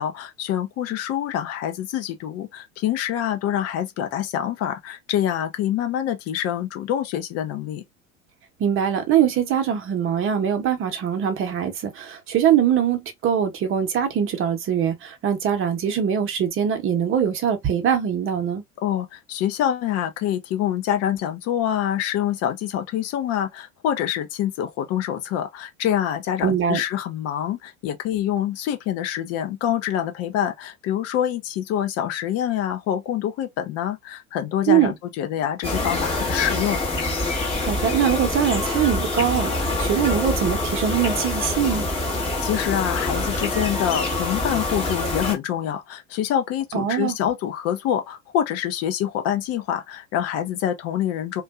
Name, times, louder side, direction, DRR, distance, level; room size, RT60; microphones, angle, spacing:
voice 1, 0.0-7.8 18.8-36.8 42.4-51.4, left 10 dB, 35° left, 0.6 m, -26 dB
voice 2, 8.6-18.6 26.4-26.8 34.7-34.9 37.6-39.5 39.8-41.9 46.7-47.1, right 8 dB, 30° right, 0.8 m, -22 dB
sound 1, 35.6-45.3, left 2 dB, 15° left, 1.0 m, -25 dB
2.5 x 2.3 x 2.3 m
figure-of-eight pair, 80°, 42 cm